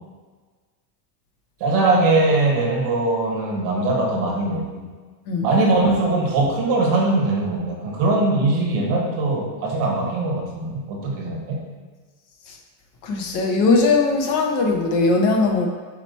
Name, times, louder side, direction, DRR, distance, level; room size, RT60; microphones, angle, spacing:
voice 1, 1.6-4.8 5.4-11.6, right 2 dB, 45° right, -1 dB, 0.9 m, -21 dB
voice 2, 13.0-15.7, left 3 dB, 45° left, 3 dB, 0.6 m, -19 dB
4.3 x 2.9 x 4.2 m, 1.4 s
cardioid pair, 175°, 50 cm